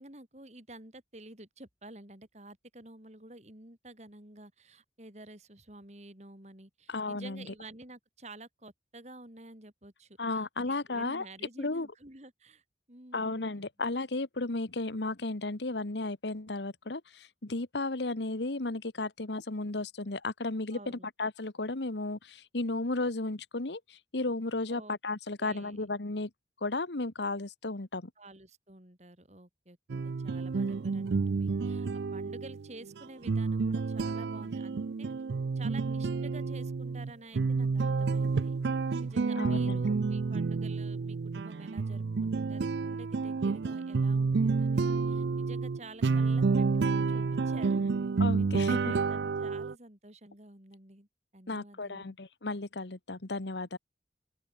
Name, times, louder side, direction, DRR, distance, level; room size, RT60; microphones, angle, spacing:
voice 1, 0.0-12.6 12.9-13.4 20.7-21.1 24.7-25.0 25.4-25.9 28.2-29.8 30.0-35.1 35.6-38.6 39.0-47.9 48.4-51.1 51.3-52.2, right 2 dB, 40° right, 3.9 m, -50 dB
voice 2, 6.9-7.5 10.2-11.3 11.6-11.9 13.1-26.3 26.6-28.1 39.3-39.8 48.2-48.9 51.5-53.8, left 2 dB, 85° left, 1.5 m, -34 dB
sound 1, 29.9-49.7, right 4 dB, 80° right, 0.5 m, -29 dB
open air
head